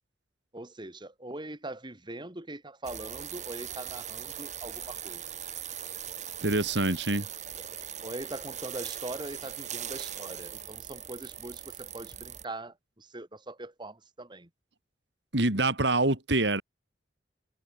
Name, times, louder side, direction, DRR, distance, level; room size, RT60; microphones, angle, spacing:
voice 1, 0.5-5.2 8.0-14.5, right 2 dB, 25° right, 2.2 m, -41 dB
sound 1, 2.8-12.4, right 10 dB, 40° right, 3.6 m, -40 dB
voice 2, 6.4-7.3 15.3-16.6, right 2 dB, 65° right, 3.1 m, -25 dB
head